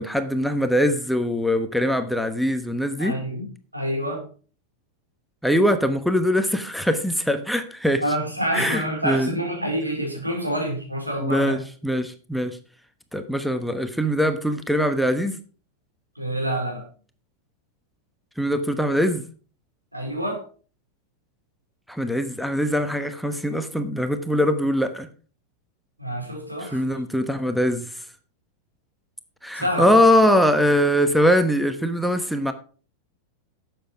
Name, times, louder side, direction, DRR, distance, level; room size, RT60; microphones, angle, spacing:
voice 1, 0.0-3.2 5.4-8.0 8.5-9.3 11.2-12.6 13.1-15.4 18.4-19.2 21.9-25.1 26.6-28.0 29.4-32.5, equal, ahead, 9 dB, 1.1 m, -22 dB
voice 2, 3.0-3.4 3.7-4.2 8.0-11.6 16.2-16.9 19.9-20.4 26.0-26.8 29.5-29.9, equal, 85° right, 0 dB, 4.5 m, -27 dB
12.0 x 8.0 x 4.8 m, 0.38 s
figure-of-eight pair, 90°, 0 cm